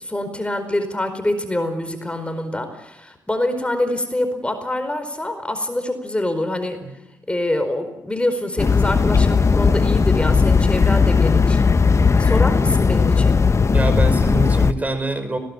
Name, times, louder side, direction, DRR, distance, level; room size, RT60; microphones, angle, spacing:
voice 1, 0.0-6.8 7.3-11.6 12.2-13.4, left 1 dB, 15° left, 8 dB, 4.7 m, -25 dB
sound 1, 8.6-14.7, left 5 dB, 40° left, 1.1 m, -16 dB
voice 2, 13.6-15.4, right 2 dB, 20° right, 9 dB, 5.3 m, -25 dB
20.5 x 18.0 x 8.8 m, 0.95 s
hypercardioid pair, 40°, 7 cm